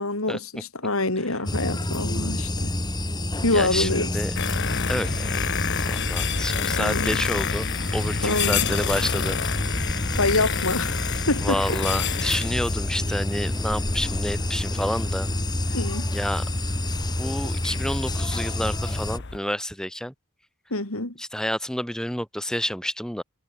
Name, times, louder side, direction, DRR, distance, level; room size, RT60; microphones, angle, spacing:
voice 1, 0.0-2.7 3.4-4.1 6.8-7.2 8.2-8.7 10.2-11.6 15.7-16.1 20.7-21.1, left 2 dB, 90° left, 5.5 m, -26 dB
sound 1, 1.5-19.2, left 1 dB, 20° left, 2.3 m, -28 dB
voice 2, 3.5-4.4 4.9-5.5 5.9-9.4 11.4-15.3 16.1-16.4 17.2-20.1 21.2-23.2, equal, 5° left, 6.7 m, -29 dB
sound 2, 4.4-19.4, left 6 dB, 55° left, 1.1 m, -30 dB
head